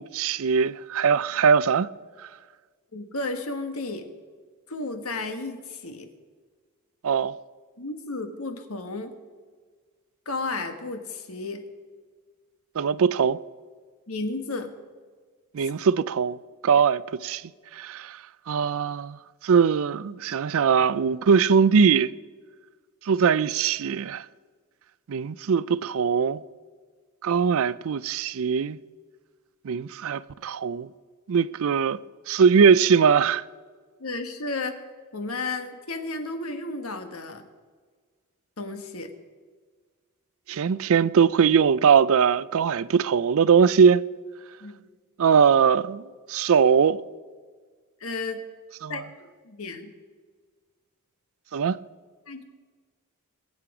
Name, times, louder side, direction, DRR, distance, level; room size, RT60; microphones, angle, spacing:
voice 1, 0.0-1.9 7.0-7.4 12.8-13.4 15.5-16.4 16.6-17.4 17.7-18.2 18.5-19.2 19.4-22.1 23.1-24.2 25.1-26.4 27.2-28.8 29.6-30.9 31.3-32.0 32.3-33.4 40.5-44.0 45.2-46.0 46.3-47.0 48.8-48.9 51.5-51.8, right 6 dB, 65° right, 0.4 m, -21 dB
voice 2, 2.9-4.1 4.7-6.1 7.8-9.1 10.2-11.6 14.1-14.7 15.6-15.7 34.0-34.7 35.1-37.4 38.6-39.1 44.6-44.8 48.0-48.4 48.9-49.9 52.3-52.4, left 3 dB, 70° left, 1.5 m, -33 dB
21.5 x 8.5 x 4.9 m
head